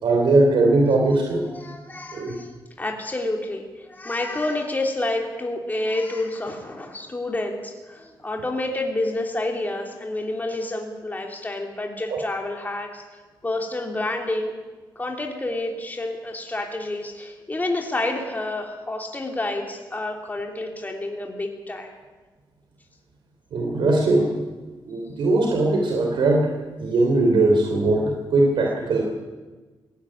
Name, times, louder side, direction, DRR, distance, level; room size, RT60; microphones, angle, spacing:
voice 1, 0.0-1.4 2.1-2.4 12.1-12.2 23.5-24.3 24.9-26.5 26.8-29.0, right 2 dB, 75° right, 1 dB, 3.3 m, -20 dB
voice 2, 1.5-2.5 2.8-13.0 13.4-14.5 14.9-21.9, left 2 dB, 20° left, 1 dB, 3.1 m, -29 dB
18.5 x 17.0 x 10.0 m, 1.3 s
cardioid pair, 90°, 8 cm